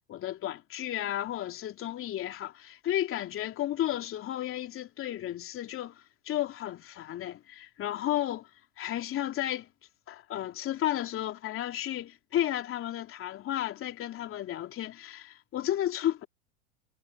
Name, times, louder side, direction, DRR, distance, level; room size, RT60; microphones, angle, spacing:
voice 1, 0.1-8.5 8.8-9.7 10.1-16.3, left 12 dB, 40° left, 3.1 m, -33 dB
hypercardioid pair, 90°, 35 cm